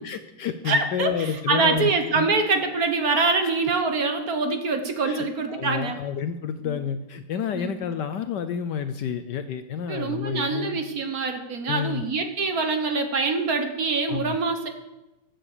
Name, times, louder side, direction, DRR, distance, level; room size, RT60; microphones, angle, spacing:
voice 1, 0.0-2.3 5.1-10.8 11.7-12.0 14.1-14.4, left 8 dB, 70° left, 10 dB, 1.1 m, -30 dB
voice 2, 0.6-6.0 6.6-6.8 7.5-7.7 9.9-14.7, right 4 dB, 50° right, 6 dB, 1.4 m, -25 dB
15.5 x 8.0 x 6.7 m, 1.0 s
omnidirectional pair, 2.3 m